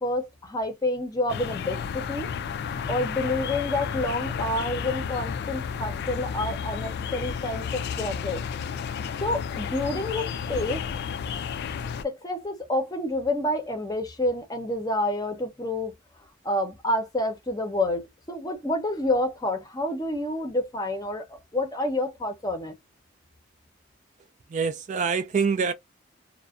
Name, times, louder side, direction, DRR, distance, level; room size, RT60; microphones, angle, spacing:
voice 1, 0.0-2.3 2.9-8.4 9.2-10.9 12.0-15.9 16.4-22.8, left 1 dB, 20° left, 0.6 m, -28 dB
sound 1, 1.3-12.0, left 7 dB, 55° left, 0.3 m, -32 dB
voice 2, 24.5-25.7, right 5 dB, 40° right, 0.3 m, -25 dB
2.5 x 2.1 x 2.4 m
head